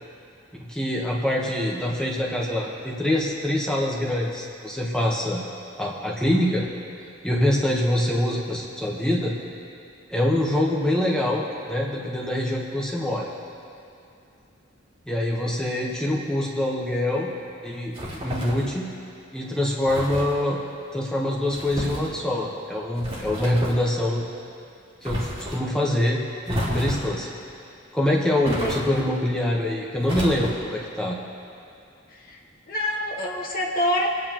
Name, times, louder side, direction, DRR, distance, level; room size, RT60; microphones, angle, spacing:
voice 1, 0.7-5.4 5.8-6.7 7.2-9.3 10.1-11.4 11.7-13.3 15.1-17.3 17.6-18.9 19.3-20.6 20.9-24.2 25.0-26.2 26.5-27.3 27.9-31.2, left 1 dB, 5° left, -3 dB, 1.1 m, -24 dB
sound 1, 17.9-18.7 19.9-20.3 21.5-22.1 23.0-23.8 25.0-25.6 26.5-27.2 28.4-29.1 30.0-30.8, equal, 30° right, 2.4 m, -31 dB
voice 2, 28.5-28.8 32.7-34.1, left 1 dB, 45° left, -2 dB, 1.6 m, -26 dB
24.5 x 9.1 x 3.0 m, 2.6 s
head